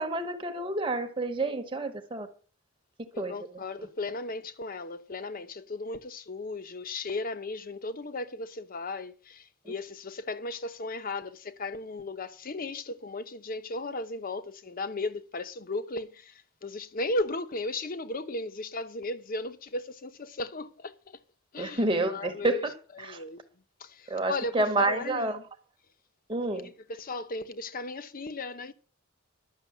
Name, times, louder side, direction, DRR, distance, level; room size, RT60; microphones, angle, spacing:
voice 1, 0.0-2.3 3.2-3.3 21.6-22.7 23.0-23.2 24.1-25.4 26.3-26.7, right 2 dB, 25° right, 0.9 m, -29 dB
voice 2, 3.1-21.2 21.5-22.7 23.0-23.5 23.8-25.5 26.5-28.7, left 2 dB, 45° left, 0.8 m, -36 dB
11.5 x 6.4 x 7.1 m
head